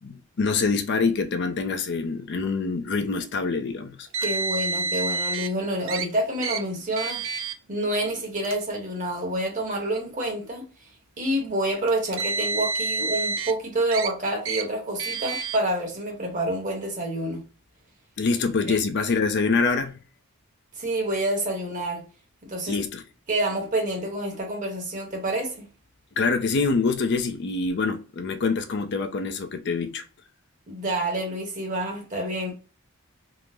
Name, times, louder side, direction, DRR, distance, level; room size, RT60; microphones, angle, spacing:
voice 1, 0.0-4.1 18.2-20.0 22.7-23.0 26.2-30.0, left 4 dB, 50° left, 0.4 m, -25 dB
Car, 4.1-5.5 5.9-6.1 6.4-6.6 7.0-7.5 8.4-8.6 9.5-9.6 11.9-13.5 13.9-14.1 14.5-14.6 15.0-15.6, right 4 dB, 60° right, 0.5 m, -28 dB
voice 2, 4.2-10.7 11.2-17.4 18.7-18.8 20.8-22.0 22.4-22.8 23.3-25.7 30.7-32.5, right 1 dB, 35° right, 1.1 m, -28 dB
3.6 x 2.0 x 2.9 m
head